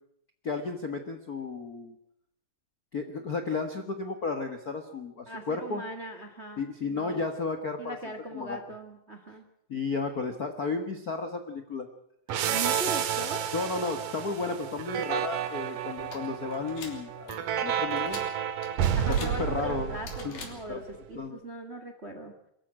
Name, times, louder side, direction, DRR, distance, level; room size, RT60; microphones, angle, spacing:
voice 1, 0.4-1.9 2.9-5.8 6.6-8.6 9.7-11.9 13.5-18.2 19.1-20.0 20.2-21.4, left 4 dB, 45° left, 6 dB, 1.2 m, -33 dB
voice 2, 5.3-7.3 7.8-9.4 12.4-13.5 18.9-20.8 21.1-22.3, right 1 dB, 25° right, 6 dB, 1.5 m, -39 dB
sound 1, 12.3-20.8, right 9 dB, 80° right, 3.1 m, -31 dB
sound 2, 16.0-21.0, left 4 dB, 65° left, 4.6 m, -46 dB
24.0 x 14.0 x 8.9 m, 0.74 s
omnidirectional pair, 3.7 m